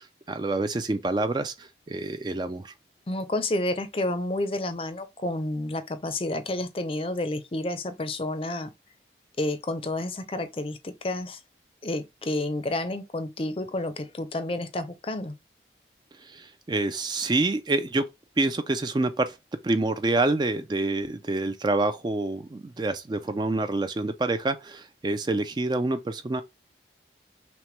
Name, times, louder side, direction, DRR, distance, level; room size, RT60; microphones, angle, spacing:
voice 1, 0.0-2.7 16.2-18.0 18.4-19.4 19.6-26.4, right 2 dB, 25° right, 0.3 m, -27 dB
voice 2, 3.1-8.7 9.4-11.4 11.8-15.3, left 1 dB, 30° left, 0.5 m, -30 dB
5.9 x 2.2 x 3.1 m
head